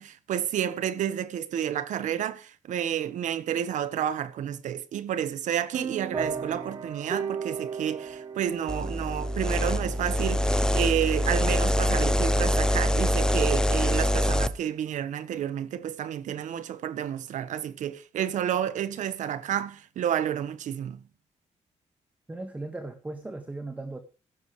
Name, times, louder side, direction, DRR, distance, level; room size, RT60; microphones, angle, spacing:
voice 1, 0.0-21.0, right 10 dB, 90° right, 1.3 m, -30 dB
sound 1, 5.7-13.8, right 5 dB, 35° right, 1.9 m, -37 dB
sound 2, 8.7-14.5, equal, 5° left, 0.7 m, -24 dB
voice 2, 22.3-24.0, right 2 dB, 10° right, 1.7 m, -37 dB
15.5 x 13.0 x 3.3 m
wide cardioid pair, 165°, 12 cm